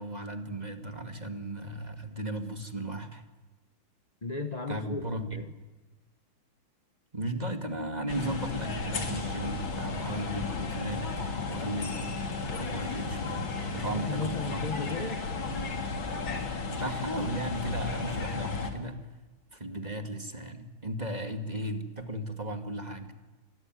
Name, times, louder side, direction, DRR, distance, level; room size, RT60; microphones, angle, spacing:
voice 1, 0.0-3.2 4.7-5.4 7.1-11.1 11.5-14.7 16.7-19.1 19.5-23.1, right 1 dB, 20° right, 6 dB, 2.3 m, -36 dB
voice 2, 4.2-5.5 13.9-15.3, left 4 dB, 30° left, 8 dB, 0.9 m, -35 dB
sound 1, 8.1-18.7, left 4 dB, 65° left, 3.5 m, -34 dB
26.5 x 21.5 x 9.4 m, 1.2 s
omnidirectional pair, 2.3 m